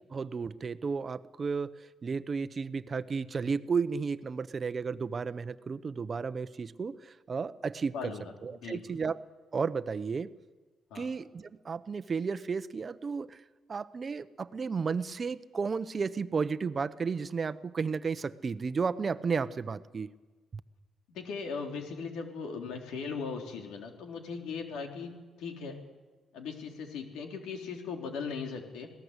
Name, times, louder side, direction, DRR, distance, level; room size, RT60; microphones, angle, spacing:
voice 1, 0.1-1.7 2.0-8.1 8.4-9.2 9.5-10.3 10.9-13.4 13.7-20.1, right 5 dB, 40° right, 14 dB, 0.9 m, -33 dB
voice 2, 7.9-8.8 10.9-11.1 21.1-25.8 26.3-28.9, left 5 dB, 90° left, 3 dB, 3.6 m, -39 dB
26.0 x 18.0 x 8.2 m, 1.3 s
cardioid pair, 90°, 0 cm